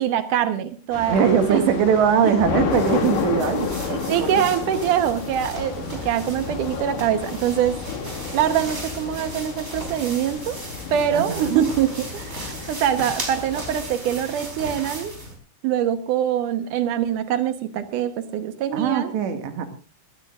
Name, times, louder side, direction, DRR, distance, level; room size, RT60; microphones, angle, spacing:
voice 1, 0.0-1.2 1.5-1.6 2.2-2.3 4.1-7.8 8.3-10.6 10.9-15.1 15.6-19.1, right 10 dB, 90° right, 9 dB, 1.8 m, -24 dB
Thunder / Rain, 0.9-13.9, left 6 dB, 55° left, 3.0 m, -31 dB
voice 2, 1.1-4.4 11.1-11.7 18.7-19.7, right 7 dB, 70° right, 7 dB, 4.0 m, -21 dB
sound 1, 2.7-15.3, right 1 dB, 15° right, 3.8 m, -36 dB
22.0 x 17.0 x 2.5 m, 0.33 s
omnidirectional pair, 5.4 m